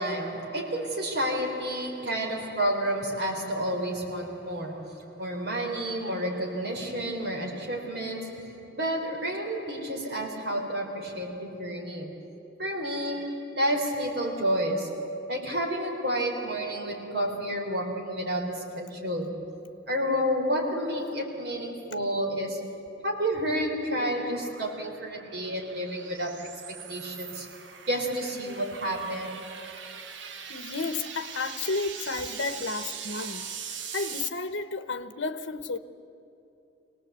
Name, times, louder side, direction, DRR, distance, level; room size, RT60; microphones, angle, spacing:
voice 1, 0.0-12.3 12.6-19.5 19.9-27.5 27.9-29.8, equal, 55° right, 4.0 m, -30 dB
sound 1, 22.8-34.3, right 7 dB, 80° right, 1.1 m, -42 dB
voice 2, 30.5-35.8, left 3 dB, 80° left, 0.9 m, -32 dB
23.0 x 18.5 x 8.1 m
head